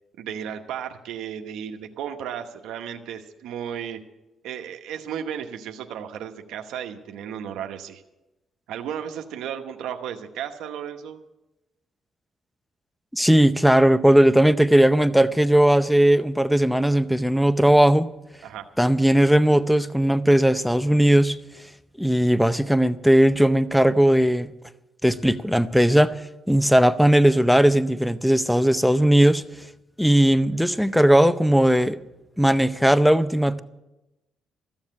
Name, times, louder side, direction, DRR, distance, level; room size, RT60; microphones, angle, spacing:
voice 1, 0.2-4.0 4.4-8.0 8.7-11.2 18.4-18.6, right 9 dB, 85° right, 5 dB, 1.0 m, -34 dB
voice 2, 13.1-18.1 18.8-21.4 22.0-24.5 25.0-26.1 26.5-29.4 30.0-32.0 32.4-33.6, right 1 dB, ahead, 14 dB, 0.6 m, -18 dB
14.5 x 7.2 x 9.6 m, 0.97 s
cardioid pair, 90°, 0 cm